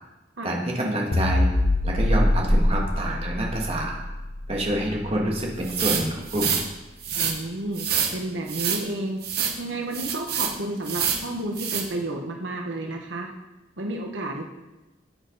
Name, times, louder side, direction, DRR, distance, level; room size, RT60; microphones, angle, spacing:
voice 1, 0.4-1.5 1.8-4.0 4.5-6.6, right 1 dB, 35° right, -2 dB, 1.9 m, -27 dB
sound 1, 1.1-5.6, left 1 dB, 80° left, 1.0 m, -24 dB
sound 2, 5.6-6.6 7.0-7.3 7.8-8.1 8.5-8.8 9.2-9.6 9.9-10.5 10.8-11.2 11.6-11.8, right 7 dB, 55° right, 1.4 m, -26 dB
voice 2, 7.1-9.2 9.6-13.3 13.8-14.4, right 1 dB, 85° right, 2 dB, 1.2 m, -31 dB
14.0 x 8.0 x 4.0 m, 1.0 s
head